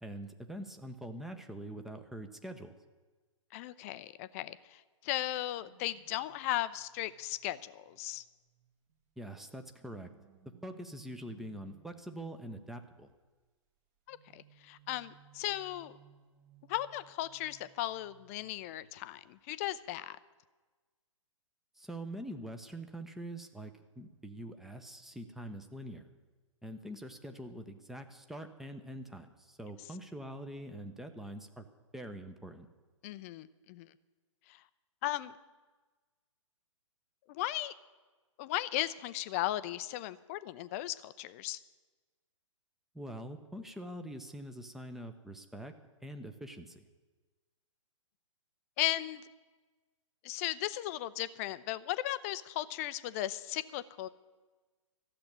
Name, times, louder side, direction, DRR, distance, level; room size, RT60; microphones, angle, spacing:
voice 1, 0.0-2.7 9.2-10.1 10.6-13.1 21.8-26.1 26.6-31.7 31.9-32.7 42.9-45.7 46.0-46.8, right 1 dB, ahead, 6 dB, 0.7 m, -44 dB
voice 2, 3.5-8.2 14.1-16.0 16.7-20.2 33.0-33.9 34.5-34.6 35.0-35.4 37.3-37.7 38.4-41.6 48.8-49.3 50.2-54.1, left 15 dB, 25° left, 15 dB, 0.5 m, -36 dB
sound 1, 5.6-9.2 9.8-13.0 14.1-19.3 19.6-19.9, right 7 dB, 30° right, 1.4 m, -64 dB
13.0 x 7.7 x 10.0 m, 1.3 s
figure-of-eight pair, 120°, 17 cm